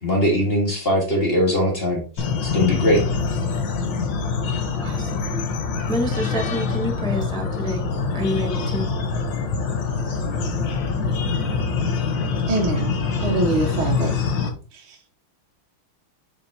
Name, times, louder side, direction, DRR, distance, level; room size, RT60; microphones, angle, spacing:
voice 1, 0.0-2.0 2.4-3.1, equal, 30° left, 1.7 m, -20 dB
sound 1, 2.2-14.5, left 5 dB, 60° left, 1.7 m, -25 dB
voice 2, 4.8-5.3 5.9-7.9 8.1-8.9, equal, 5° left, 0.5 m, -28 dB
voice 3, 12.5-14.2 14.9-15.0, right 2 dB, 75° right, 1.8 m, -24 dB
7.0 x 5.5 x 2.8 m
omnidirectional pair, 2.4 m